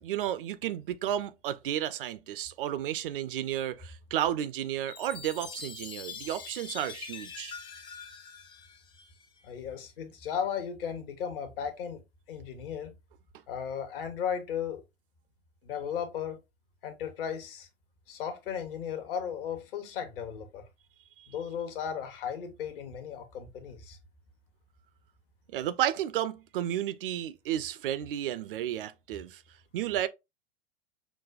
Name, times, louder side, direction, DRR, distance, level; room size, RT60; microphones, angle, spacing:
voice 1, 0.0-7.5 21.2-21.3 25.5-29.4 29.7-30.1, right 11 dB, 55° right, 0.4 m, -32 dB
Chime, 4.9-9.4, left 6 dB, 15° left, 0.4 m, -44 dB
voice 2, 9.4-12.0 12.3-13.0 13.5-14.8 15.6-16.4 16.8-17.7 18.1-20.7 21.3-24.0, left 8 dB, 55° left, 1.0 m, -35 dB
5.9 x 2.2 x 2.4 m
figure-of-eight pair, 90°, 33 cm